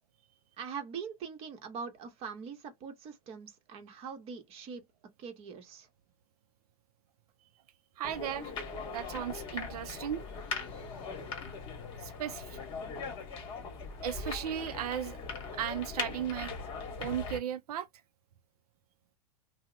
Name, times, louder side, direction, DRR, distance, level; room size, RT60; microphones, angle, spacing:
voice 1, 0.6-4.8 5.2-5.9, right 6 dB, 30° right, 0.9 m, -42 dB
sound 1, 8.0-17.4, left 4 dB, 25° left, 1.1 m, -40 dB
voice 2, 8.0-8.5 8.9-10.2 12.0-12.6 14.0-15.2 15.5-16.5 17.0-17.9, right 10 dB, 85° right, 0.4 m, -36 dB
2.8 x 2.0 x 3.7 m
supercardioid pair, 140°, 19 cm